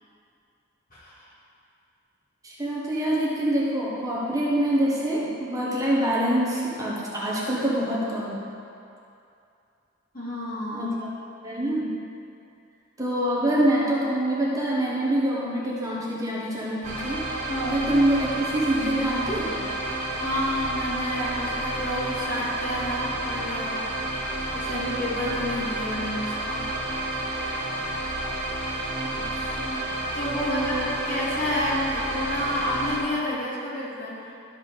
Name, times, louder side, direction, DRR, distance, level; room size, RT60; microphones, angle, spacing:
voice 1, 0.9-1.3 10.1-10.9 17.5-17.9 19.9-26.7 30.1-30.8 31.1-34.3, left 1 dB, 45° left, -7 dB, 2.4 m, -30 dB
voice 2, 2.4-8.4 10.7-11.1 11.4-11.9 13.0-17.3 17.7-19.6 29.0-29.9 30.5-30.9, right 1 dB, 20° right, -6 dB, 1.4 m, -25 dB
sound 1, 16.8-33.0, right 1 dB, 40° right, 2.5 m, -30 dB
13.0 x 4.6 x 5.6 m, 2.6 s
head